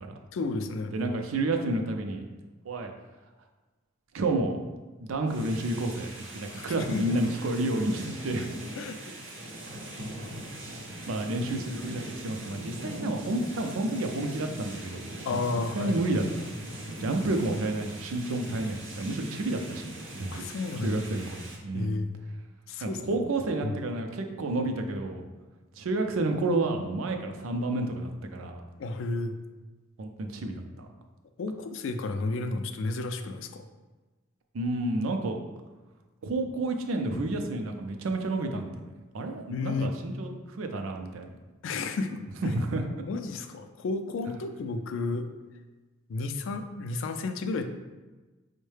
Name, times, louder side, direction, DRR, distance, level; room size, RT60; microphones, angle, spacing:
voice 1, 0.3-1.1 6.5-7.2 8.8-9.1 15.2-16.0 20.3-21.0 21.7-22.1 22.7-23.0 23.6-23.8 28.8-29.3 31.4-33.6 39.5-39.9 41.6-42.2 43.1-45.3 46.1-47.6, left 3 dB, 70° left, 7 dB, 0.3 m, -32 dB
voice 2, 0.9-2.2 2.7-2.9 4.1-4.6 5.0-8.5 11.1-15.0 15.3-16.5 17.0-20.4 20.8-21.9 22.8-25.2 25.8-28.6 30.0-30.9 34.5-35.4 36.2-41.3 42.4-42.9, right 2 dB, 85° right, 5 dB, 0.4 m, -30 dB
sound 1, 5.3-21.6, right 1 dB, 65° right, 0.8 m, -41 dB
5.4 x 2.1 x 3.2 m, 1.2 s
head